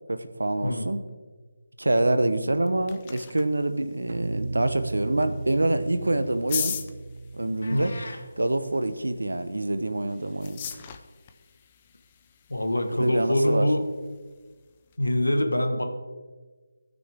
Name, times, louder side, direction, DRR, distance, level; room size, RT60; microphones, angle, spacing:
voice 1, 0.1-1.0 1.8-6.8 7.3-7.9 8.4-10.6 12.9-13.7, right 2 dB, 80° right, 10 dB, 0.8 m, -26 dB
sound 1, 2.4-15.0, left 8 dB, 25° left, 0.5 m, -41 dB
sound 2, 4.1-9.3, right 2 dB, 55° right, 0.6 m, -36 dB
sound 3, 7.6-8.2, left 2 dB, 65° left, 1.4 m, -41 dB
voice 2, 12.5-13.8 15.0-15.8, left 1 dB, 85° left, 5 dB, 1.3 m, -24 dB
16.0 x 6.2 x 3.5 m, 1.4 s
figure-of-eight pair, 160°, 0 cm